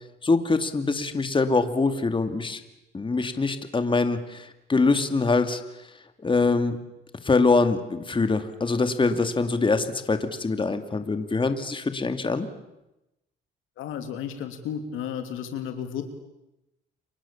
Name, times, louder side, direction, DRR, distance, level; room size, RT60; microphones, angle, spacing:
voice 1, 0.2-2.6 2.9-5.9 6.2-6.8 7.2-12.5, left 3 dB, 25° left, 8 dB, 2.4 m, -24 dB
voice 2, 13.8-16.0, left 8 dB, 90° left, 7 dB, 3.0 m, -33 dB
29.0 x 24.0 x 7.2 m, 0.93 s
cardioid pair, 90°, 20 cm